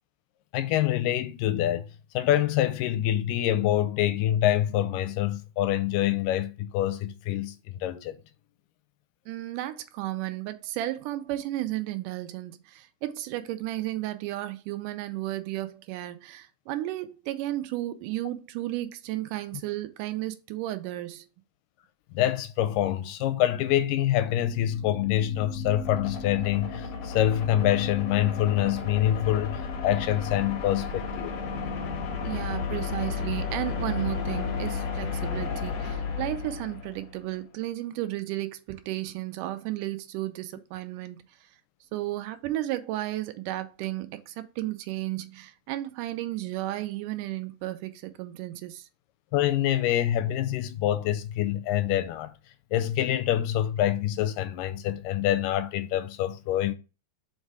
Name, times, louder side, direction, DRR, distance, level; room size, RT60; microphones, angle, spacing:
voice 1, 0.5-1.9 2.1-7.5 7.8-8.2 22.1-31.3 49.3-52.3 52.7-56.7, left 12 dB, 80° left, 2.2 m, -26 dB
voice 2, 9.3-21.3 32.2-41.2 41.9-48.9, right 15 dB, 80° right, 2.0 m, -33 dB
sound 1, 24.7-37.2, left 5 dB, 60° left, 1.9 m, -33 dB
5.5 x 4.0 x 4.7 m
omnidirectional pair, 4.0 m